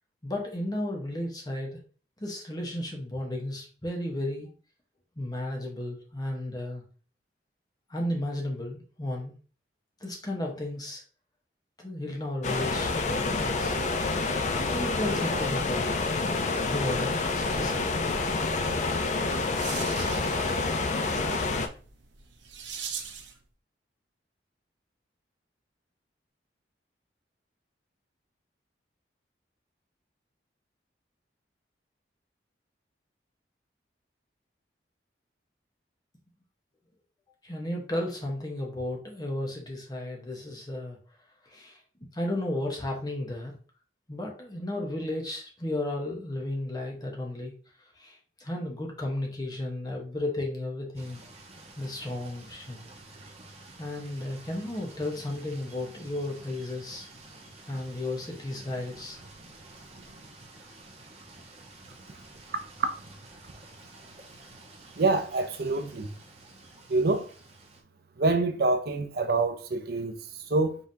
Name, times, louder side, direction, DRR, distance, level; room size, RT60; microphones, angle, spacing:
voice 1, 0.2-1.8 2.2-4.5 5.2-6.8 7.9-9.4 10.0-11.0 11.8-13.8 14.7-16.0 16.6-17.9 37.4-41.0 41.5-41.8 42.1-43.5 44.1-47.5 48.0-51.2 51.8-52.9 53.8-57.1 57.7-59.2 59.9-60.1, left 1 dB, 20° left, 1.1 m, -34 dB
sound 1, 12.4-21.7, left 3 dB, 40° left, 0.4 m, -28 dB
sound 2, 19.5-23.4, right 7 dB, 80° right, 0.8 m, -41 dB
sound 3, 50.9-67.8, right 2 dB, 35° right, 1.0 m, -50 dB
voice 2, 65.0-66.1 66.9-67.3 68.2-70.8, right 3 dB, 55° right, 0.6 m, -26 dB
5.3 x 3.5 x 2.8 m
head